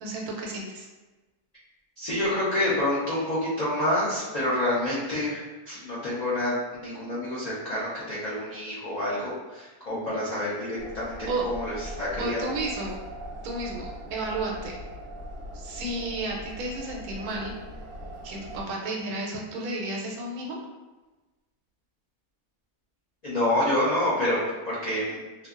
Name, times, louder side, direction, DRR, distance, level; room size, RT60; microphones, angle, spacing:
voice 1, 0.0-0.9 9.9-10.2 11.3-11.4 12.2-13.0 13.4-14.7 15.5-17.5 18.2-20.6, right 2 dB, 80° right, -1 dB, 1.1 m, -32 dB
voice 2, 2.0-6.6 6.8-12.5 23.2-25.2, left 1 dB, 85° left, -10 dB, 0.3 m, -28 dB
sound 1, 10.8-18.6, right 1 dB, 55° right, 1.0 m, -40 dB
2.6 x 2.2 x 2.3 m, 1.2 s
omnidirectional pair, 1.6 m